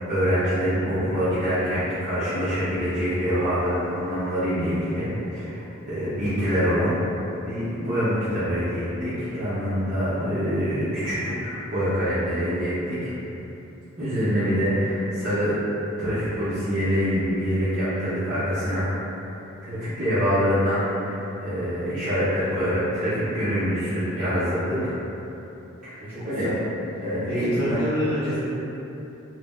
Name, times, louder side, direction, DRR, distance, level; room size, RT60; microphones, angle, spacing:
voice 1, 0.1-7.0 7.4-13.1 14.0-15.6 16.0-18.9 19.6-24.9 25.8-26.0 26.2-26.5 27.0-27.8, equal, 40° right, -16 dB, 0.8 m, -25 dB
voice 2, 26.1-26.6 27.3-28.4, equal, 10° right, -18 dB, 1.0 m, -27 dB
2.8 x 2.1 x 3.5 m, 3.0 s
head